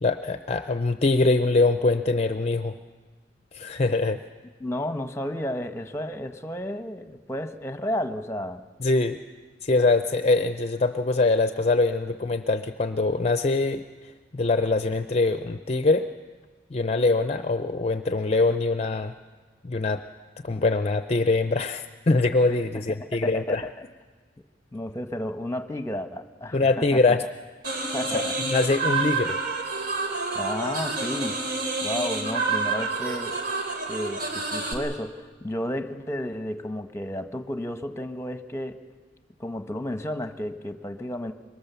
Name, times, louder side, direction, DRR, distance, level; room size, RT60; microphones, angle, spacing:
voice 1, 0.0-2.8 3.5-4.2 8.8-9.2 9.6-16.1 16.7-19.1 19.6-20.0 20.4-23.7 26.5-27.2 27.8-29.4, left 3 dB, 35° left, 9 dB, 0.6 m, -23 dB
voice 2, 4.6-8.6 23.2-23.6 24.7-27.1 27.9-28.3 30.3-31.4 31.8-33.4 33.9-38.8 39.4-41.3, left 1 dB, 15° left, 7 dB, 1.1 m, -32 dB
sound 1, 27.6-34.7, right 3 dB, 60° right, 3.5 m, -28 dB
24.5 x 22.5 x 6.9 m, 1.4 s
head